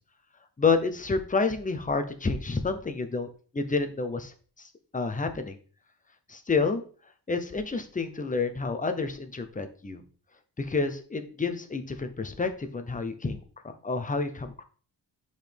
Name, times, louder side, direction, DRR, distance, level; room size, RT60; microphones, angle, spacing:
voice 1, 0.6-3.3 3.5-5.6 6.3-6.8 7.3-10.0 10.6-13.4 13.8-14.6, left 4 dB, 20° left, 7 dB, 0.7 m, -29 dB
5.9 x 5.2 x 3.4 m, 0.41 s
wide cardioid pair, 160°, 41 cm